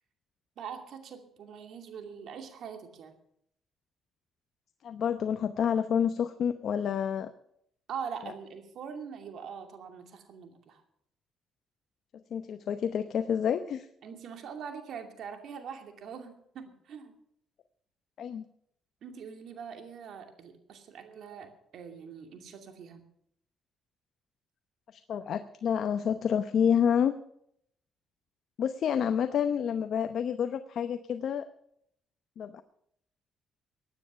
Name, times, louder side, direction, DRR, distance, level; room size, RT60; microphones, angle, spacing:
voice 1, 0.6-3.1 7.9-10.8 14.0-17.1 19.0-23.0, right 7 dB, 70° right, 5 dB, 2.5 m, -43 dB
voice 2, 4.8-7.3 12.3-13.9 18.2-18.5 24.9-27.1 28.6-31.5 32.4-32.6, left 8 dB, 65° left, 9 dB, 0.8 m, -28 dB
16.0 x 9.7 x 6.8 m, 0.71 s
cardioid pair, 90°, 0 cm